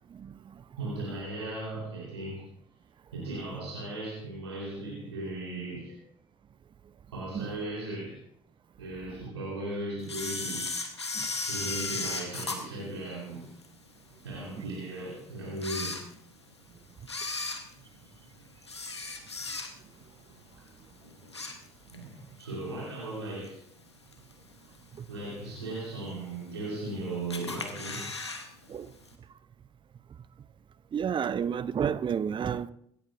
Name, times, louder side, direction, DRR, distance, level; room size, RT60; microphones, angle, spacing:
voice 1, 0.8-2.5 3.1-6.0 7.1-8.2 8.8-10.7 11.5-13.5 14.2-16.1 21.9-23.6 25.1-28.4, right 2 dB, 80° right, 3.7 m, -37 dB
Camera, 10.1-13.7 14.2-14.3 15.0-15.1 15.5-16.5 17.0-20.0 20.4-20.7 21.0-22.1 22.4-22.5 23.4-23.5 24.1-24.5 24.9-25.0 25.2-25.3 25.5-25.6 26.4-26.9 27.3-28.5 28.7-28.8 29.1-29.2, left 3 dB, 90° left, 1.0 m, -35 dB
voice 2, 30.9-32.7, right 7 dB, 35° right, 0.7 m, -29 dB
24.5 x 13.0 x 2.5 m
figure-of-eight pair, 45°, 14 cm